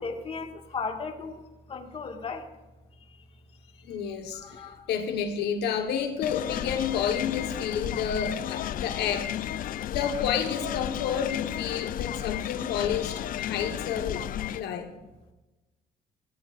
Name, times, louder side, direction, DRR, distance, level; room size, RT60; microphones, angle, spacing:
voice 1, 0.0-1.4 1.7-2.5 4.3-4.9, left 4 dB, 35° left, 4 dB, 1.9 m, -36 dB
voice 2, 3.8-9.5 9.9-14.9, left 7 dB, 75° left, 5 dB, 1.4 m, -30 dB
sound 1, 6.2-14.6, left 11 dB, 55° left, 0.5 m, -33 dB
17.5 x 15.0 x 2.6 m, 1.1 s
cardioid pair, 110°, 17 cm